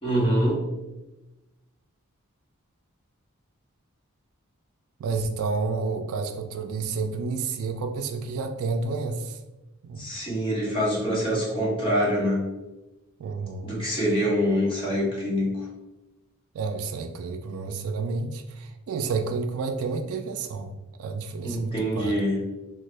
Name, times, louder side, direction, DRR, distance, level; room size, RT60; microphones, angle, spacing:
voice 1, 0.0-0.6 10.0-12.4 13.6-15.7 21.4-22.4, equal, 25° left, -5 dB, 1.0 m, -25 dB
voice 2, 5.0-9.4 9.8-10.1 13.2-13.8 16.5-20.7 21.0-22.3, right 4 dB, 70° right, 6 dB, 0.3 m, -30 dB
3.1 x 2.1 x 3.1 m, 1.0 s
head